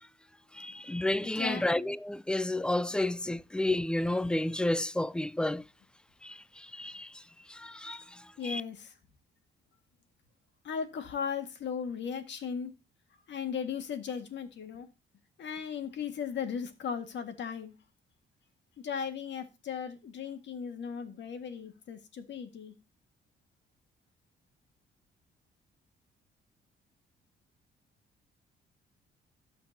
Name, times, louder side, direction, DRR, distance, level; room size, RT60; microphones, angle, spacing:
voice 1, 0.6-5.6 6.2-6.3 6.7-7.1 7.6-8.0 8.4-8.6, left 1 dB, 5° left, 0.4 m, -30 dB
voice 2, 1.2-1.6 8.4-8.9 10.6-12.7 13.3-14.9 15.4-17.7 18.8-22.7, left 7 dB, 65° left, 1.8 m, -37 dB
16.5 x 6.0 x 2.8 m
cardioid pair, 90°, 20 cm